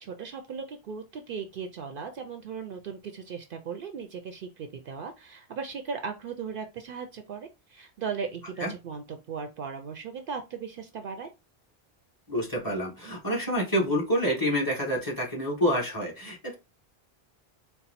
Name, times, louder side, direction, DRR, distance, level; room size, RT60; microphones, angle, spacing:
voice 1, 0.0-11.3, right 6 dB, 65° right, 0.7 m, -37 dB
voice 2, 12.3-16.5, equal, 20° left, 1.5 m, -27 dB
4.2 x 2.0 x 4.1 m
omnidirectional pair, 1.1 m